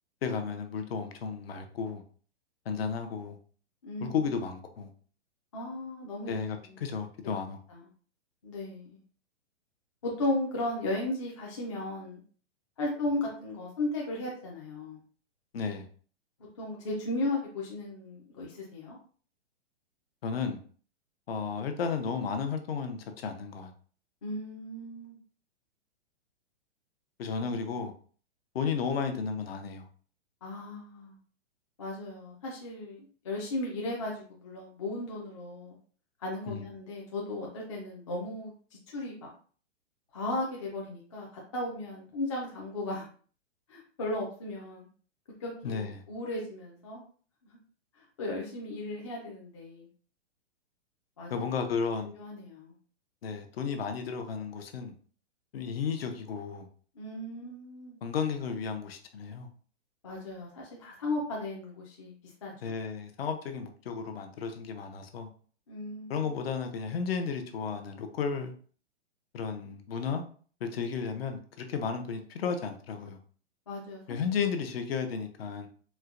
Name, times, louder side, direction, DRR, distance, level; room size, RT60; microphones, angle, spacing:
voice 1, 0.2-2.0 2.7-3.4 4.0-4.9 6.3-7.6 15.5-15.9 20.2-20.6 21.3-23.7 27.2-27.9 28.5-29.9 36.5-36.7 45.6-46.0 51.3-52.1 53.2-54.9 55.5-56.7 58.0-59.5 62.6-65.3 66.1-68.5 69.3-70.2 70.6-73.2 74.1-75.7, left 6 dB, 60° left, 0.7 m, -33 dB
voice 2, 3.8-4.3 5.5-6.4 6.7-6.8 7.7-7.9 8.4-9.0 10.0-12.2 12.8-15.0 16.6-19.0 24.2-25.1 30.4-31.2 31.8-35.8 36.2-38.5 38.9-39.3 40.1-41.3 41.5-43.1 43.7-44.9 45.4-47.0 48.2-49.9 51.2-51.4 52.2-52.7 57.0-58.0 60.0-62.7 65.7-66.3 73.7-74.2, left 2 dB, 30° left, 0.4 m, -36 dB
4.4 x 2.1 x 2.5 m
hypercardioid pair, 165°, 34 cm